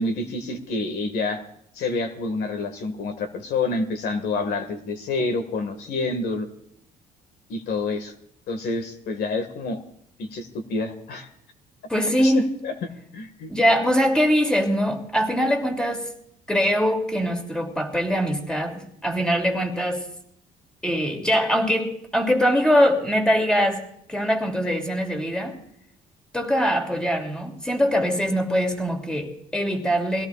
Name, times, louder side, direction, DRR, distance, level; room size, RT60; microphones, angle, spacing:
voice 1, 0.0-1.4 1.7-6.5 7.5-8.1 8.5-9.8 10.2-11.3 12.2-13.5, left 3 dB, 70° left, 1.9 m, -28 dB
voice 2, 11.9-12.5 13.5-16.1 16.5-20.1 20.8-23.8 24.1-25.6 26.3-30.3, equal, 5° left, 2.9 m, -22 dB
23.5 x 17.0 x 2.5 m
cardioid pair, 110°, 17 cm